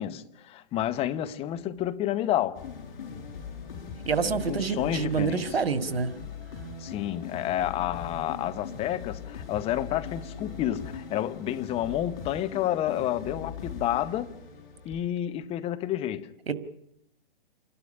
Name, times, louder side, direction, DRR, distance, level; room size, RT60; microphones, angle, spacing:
voice 1, 0.0-2.6 4.2-5.6 6.8-14.3 14.8-16.3, left 12 dB, 20° left, 0.9 m, -30 dB
sound 1, 2.5-15.0, left 6 dB, 50° left, 6.6 m, -40 dB
voice 2, 4.1-6.2 16.5-16.6, right 5 dB, 85° right, 1.8 m, -27 dB
27.5 x 12.5 x 10.0 m
hypercardioid pair, 130°, 29 cm